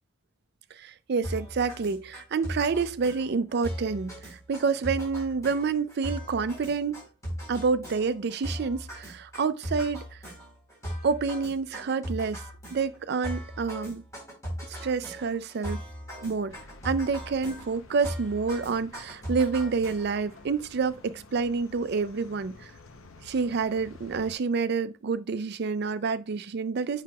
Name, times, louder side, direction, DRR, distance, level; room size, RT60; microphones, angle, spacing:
voice 1, 0.7-7.0 7.5-10.2 11.0-12.4 12.7-14.0 14.8-15.8 16.2-16.5 16.8-22.7 23.2-27.0, right 5 dB, 55° right, 0.4 m, -28 dB
sound 1, 1.2-20.3, equal, 15° left, 4.0 m, -39 dB
sound 2, 16.5-24.3, left 3 dB, 90° left, 0.8 m, -51 dB
7.7 x 5.6 x 2.3 m
head